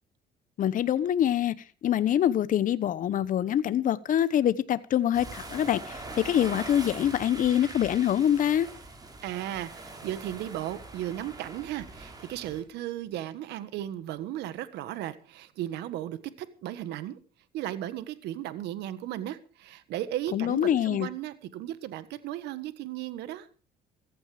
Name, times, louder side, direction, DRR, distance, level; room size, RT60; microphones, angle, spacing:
voice 1, 0.6-1.5 1.8-8.7 20.3-21.1, left 10 dB, 55° left, 1.0 m, -25 dB
sound 1, 5.1-12.6, right 2 dB, 20° right, 5.7 m, -43 dB
voice 2, 9.2-17.2 17.5-23.5, right 12 dB, 85° right, 1.5 m, -35 dB
15.5 x 15.0 x 4.9 m
cardioid pair, 110°, 17 cm